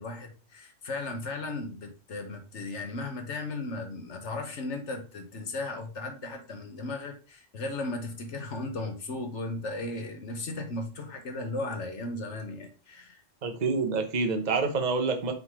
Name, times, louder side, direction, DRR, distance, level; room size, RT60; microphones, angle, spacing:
voice 1, 0.0-13.2, left 2 dB, 65° left, 5 dB, 1.4 m, -36 dB
voice 2, 13.4-15.3, right 4 dB, 35° right, 5 dB, 1.0 m, -27 dB
5.8 x 3.8 x 4.7 m, 0.36 s
omnidirectional pair, 1.3 m